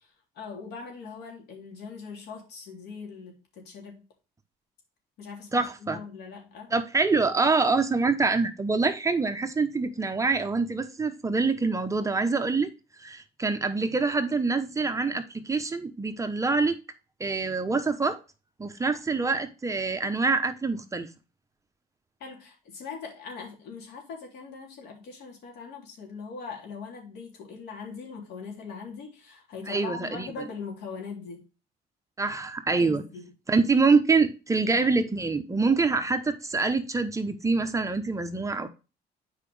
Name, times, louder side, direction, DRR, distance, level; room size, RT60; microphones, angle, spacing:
voice 1, 0.3-3.9 5.2-6.7 22.2-31.4 32.8-33.3, left 5 dB, 75° left, 3.3 m, -41 dB
voice 2, 5.5-6.0 6.7-12.7 13.0-16.8 17.2-18.2 18.6-21.1 29.7-30.3 32.2-33.0 33.5-38.7, right 4 dB, 20° right, 0.9 m, -25 dB
8.3 x 4.9 x 3.3 m
cardioid pair, 110°, 17 cm